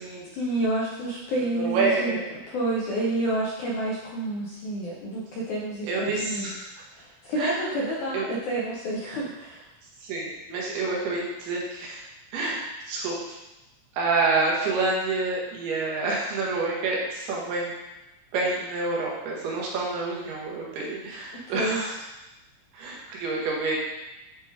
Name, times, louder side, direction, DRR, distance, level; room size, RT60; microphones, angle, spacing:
voice 1, 0.3-2.2 2.5-6.5 6.9-9.7 21.5-21.8, right 1 dB, 75° left, -5 dB, 1.8 m, -29 dB
voice 2, 1.5-2.2 5.9-6.7 7.4-7.6 8.1-8.3 10.0-12.1 12.3-13.2 13.9-17.7 18.3-21.9 22.7-23.8, right 3 dB, 90° right, -3 dB, 3.2 m, -28 dB
8.0 x 3.5 x 3.5 m, 0.99 s
omnidirectional pair, 4.4 m